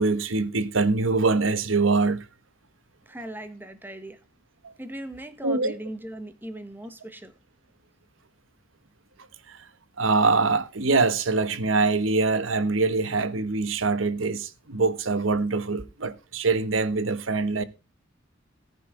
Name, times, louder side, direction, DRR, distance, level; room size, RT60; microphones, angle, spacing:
voice 1, 0.0-2.2 4.6-4.7 5.4-5.7 9.5-9.6 10.0-17.6, right 3 dB, 90° right, 1.2 m, -24 dB
voice 2, 3.0-4.2 4.8-7.3, right 1 dB, 10° right, 1.4 m, -38 dB
14.5 x 9.4 x 3.8 m
head